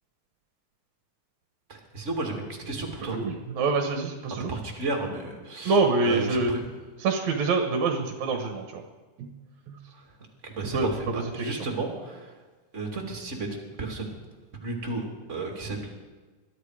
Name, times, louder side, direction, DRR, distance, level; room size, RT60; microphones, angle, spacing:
voice 1, 1.7-3.2 4.5-6.6 10.0-10.1 10.4-12.3 12.7-14.1 14.6-15.9, right 2 dB, 25° right, 2 dB, 2.3 m, -33 dB
voice 2, 3.1-4.5 5.7-6.5 7.0-8.8 9.2-9.3 9.7-9.8 10.7-10.9 11.4-11.6, right 3 dB, 65° right, 4 dB, 2.3 m, -25 dB
21.5 x 12.5 x 4.9 m, 1.3 s
omnidirectional pair, 3.8 m